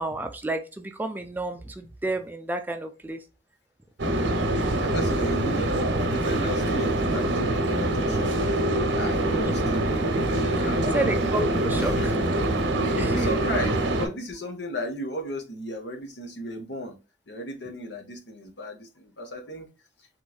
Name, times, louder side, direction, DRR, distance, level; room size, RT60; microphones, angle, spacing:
voice 1, 0.0-3.2 10.5-10.7 10.9-12.1 12.9-13.3, right 2 dB, 10° right, 0.3 m, -30 dB
sound 1, 4.0-14.1, right 1 dB, 90° right, 0.7 m, -24 dB
voice 2, 4.8-8.3 8.9-9.9 10.6-11.1 11.7-17.0 17.3-19.7 20.0-20.1, left 1 dB, 70° left, 0.9 m, -35 dB
3.7 x 3.0 x 2.3 m
head